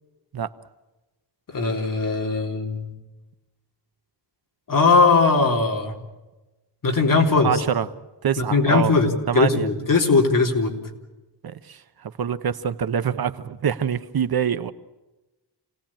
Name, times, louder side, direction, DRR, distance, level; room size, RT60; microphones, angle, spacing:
voice 1, 1.5-2.9 4.7-5.9 6.8-7.5 8.4-10.8, left 4 dB, 50° left, 2 dB, 3.7 m, -19 dB
voice 2, 7.4-7.9 8.2-8.9 9.3-9.7 11.4-14.7, right 8 dB, 60° right, 11 dB, 1.0 m, -25 dB
28.0 x 18.5 x 8.8 m, 1.1 s
wide cardioid pair, 160°, 42 cm